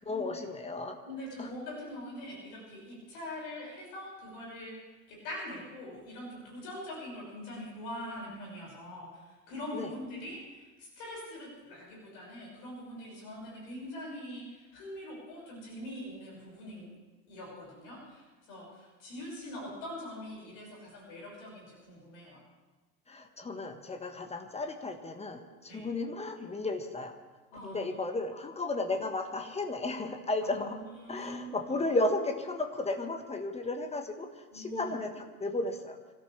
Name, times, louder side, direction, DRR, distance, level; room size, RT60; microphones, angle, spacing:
voice 1, 0.0-1.0 1.4-1.5 9.7-9.9 23.1-27.2 27.6-30.8 31.1-36.0, left 2 dB, 15° left, 6 dB, 1.4 m, -34 dB
voice 2, 1.0-16.9 17.3-22.4 25.7-25.9 27.5-28.0 30.4-31.7 34.5-34.9, left 1 dB, 50° left, -3 dB, 6.1 m, -43 dB
25.5 x 13.5 x 3.4 m, 1.2 s
figure-of-eight pair, 85°, 46 cm